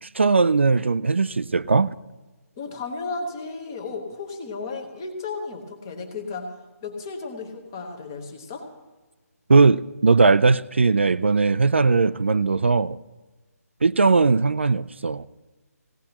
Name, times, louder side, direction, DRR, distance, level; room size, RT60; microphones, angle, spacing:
voice 1, 0.0-2.0 9.5-13.0 13.8-15.3, right 4 dB, 45° right, 0.3 m, -19 dB
voice 2, 2.6-6.5 6.8-8.7, left 4 dB, 15° left, 0.9 m, -34 dB
19.5 x 16.5 x 2.9 m
hypercardioid pair, 180°, 9 cm